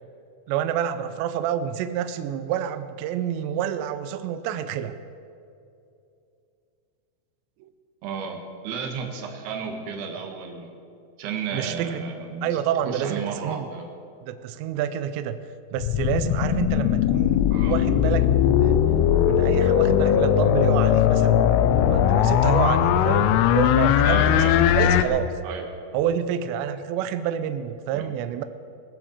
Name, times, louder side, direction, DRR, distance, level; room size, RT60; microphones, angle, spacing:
voice 1, 0.5-5.0 7.6-7.7 11.5-12.0 12.4-13.7 14.2-15.4 15.7-18.8 19.2-21.4 21.9-25.3 25.9-28.4, right 9 dB, 90° right, 11 dB, 2.5 m, -28 dB
voice 2, 8.0-8.4 8.6-10.7 11.2-12.6 12.8-13.9 17.5-17.8 24.0-24.5 25.4-25.6 27.9-28.2, right 6 dB, 65° right, 3 dB, 3.2 m, -33 dB
sound 1, 15.8-25.0, left 10 dB, 90° left, 3.2 m, -19 dB
20.5 x 7.8 x 7.2 m, 2.6 s
omnidirectional pair, 5.7 m